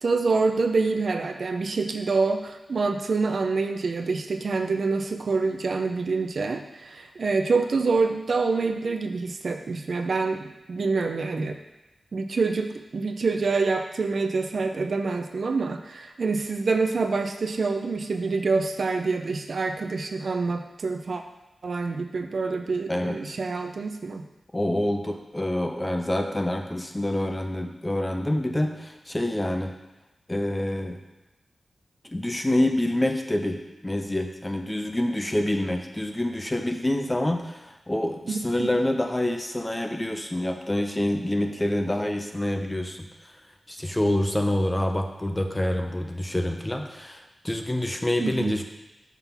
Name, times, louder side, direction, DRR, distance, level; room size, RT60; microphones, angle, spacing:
voice 1, 0.0-11.6 12.1-21.2 21.6-24.2 38.3-38.7 48.2-48.6, right 4 dB, 55° right, 5 dB, 0.5 m, -26 dB
voice 2, 24.5-29.7 30.3-31.0 32.0-43.1 43.7-48.6, left 1 dB, 15° left, 4 dB, 0.5 m, -27 dB
5.8 x 3.7 x 5.8 m, 1.0 s
wide cardioid pair, 160°, 0 cm